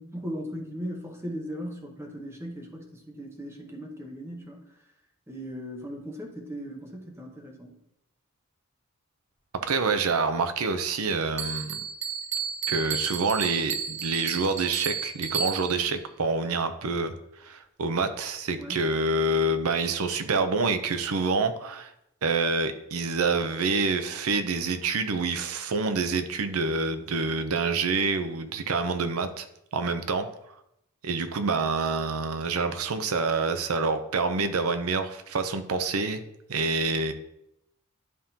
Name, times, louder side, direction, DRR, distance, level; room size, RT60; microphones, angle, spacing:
voice 1, 0.0-4.6 5.3-7.7 18.6-18.8, equal, 10° right, 1 dB, 1.0 m, -38 dB
voice 2, 9.6-11.8 12.7-21.9 22.2-29.5 29.7-30.3 31.0-36.2 36.5-37.1, right 3 dB, 80° right, 9 dB, 0.6 m, -27 dB
Bell, 11.4-15.9, right 7 dB, 30° right, 0.5 m, -32 dB
11.0 x 3.7 x 2.8 m, 0.81 s
head